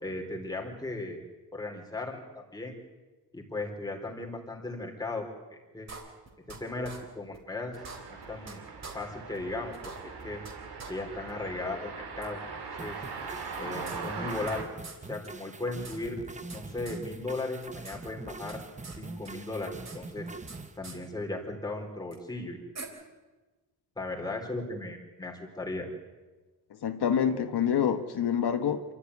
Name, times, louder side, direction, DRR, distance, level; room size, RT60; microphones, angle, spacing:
voice 1, 0.0-1.2 1.5-2.8 3.3-5.2 5.5-5.9 6.6-7.7 8.3-8.6 8.9-9.7 10.2-10.4 10.9-12.4 12.8-13.0 13.6-14.6 15.1-16.2 16.5-18.6 19.0-20.3 20.8-22.6 24.0-25.9, left 2 dB, 10° left, 0 dB, 4.1 m, -36 dB
sound 1, 5.9-6.6 6.8-7.0 7.3-7.4 7.7-8.5 8.8-8.9 9.3-9.4 9.7-10.5 10.8-10.9 11.3-11.4 12.2-12.3 13.4-14.6 14.8-15.0 15.2-15.3 15.6-16.6 16.9-17.0 17.3-18.0 18.2-19.0 19.2-20.6 20.8-21.0 22.1-22.2 22.8-22.9, right 4 dB, 45° right, 3.8 m, -45 dB
sound 2, 7.8-14.6, right 4 dB, 75° right, 4.2 m, -40 dB
sound 3, 12.8-20.8, right 3 dB, 20° right, 1.0 m, -43 dB
voice 2, 26.8-28.8, left 8 dB, 80° left, 7 dB, 1.4 m, -27 dB
27.5 x 13.5 x 9.8 m, 1.2 s
wide cardioid pair, 165°, 39 cm